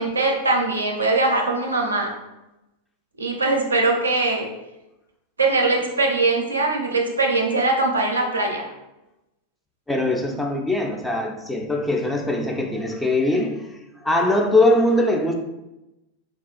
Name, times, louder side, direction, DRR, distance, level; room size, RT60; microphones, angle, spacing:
voice 1, 0.0-2.1 3.2-4.5 5.4-8.7, right 3 dB, 75° right, 1 dB, 0.4 m, -21 dB
voice 2, 9.9-15.3, left 1 dB, 5° left, 1 dB, 0.3 m, -21 dB
3.0 x 2.3 x 2.2 m, 0.96 s
figure-of-eight pair, 90°, 0 cm